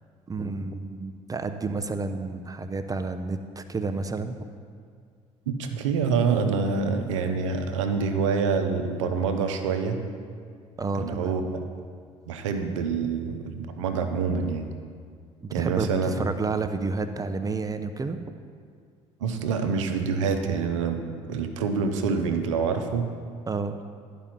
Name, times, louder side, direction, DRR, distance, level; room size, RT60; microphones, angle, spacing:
voice 1, 0.3-4.4 10.8-11.3 15.4-18.2 23.5-23.8, right 3 dB, 25° right, 9 dB, 0.7 m, -30 dB
voice 2, 5.5-10.0 10.9-11.6 12.3-14.7 15.5-16.1 19.2-21.0 21.3-23.1, right 5 dB, 80° right, 7 dB, 0.8 m, -26 dB
11.5 x 5.2 x 5.9 m, 2.2 s
hypercardioid pair, 55°, 16 cm